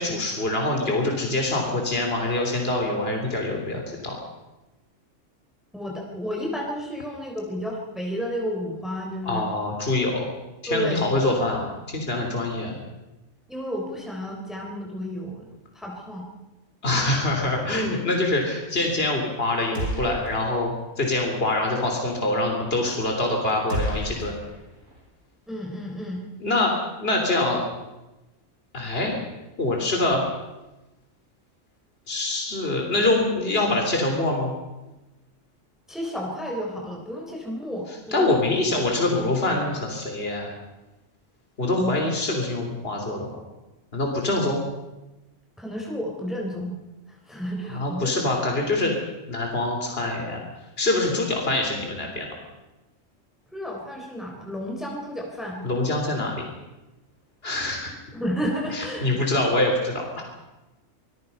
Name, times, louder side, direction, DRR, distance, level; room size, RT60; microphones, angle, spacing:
voice 1, 0.0-4.2 9.2-10.3 10.6-12.8 16.8-20.7 21.0-24.3 26.4-26.7 27.0-27.6 28.7-29.2 29.6-30.2 32.1-34.5 38.1-40.5 41.6-43.3 43.9-44.6 47.7-48.9 49.3-50.4 50.8-52.3 55.6-56.4 57.4-57.9 58.7-60.2, left 2 dB, 45° left, 1 dB, 3.6 m, -25 dB
voice 2, 5.7-9.5 10.7-11.0 13.5-16.3 25.5-26.2 35.9-38.4 41.7-41.9 45.6-46.7 47.1-48.1 53.5-55.7 58.1-59.2, equal, ahead, -1 dB, 3.6 m, -31 dB
sound 1, 19.8-20.6 20.9-21.0 23.7-25.0, right 1 dB, 90° right, 6.6 m, -31 dB
26.0 x 21.0 x 5.5 m, 1.0 s
omnidirectional pair, 1.4 m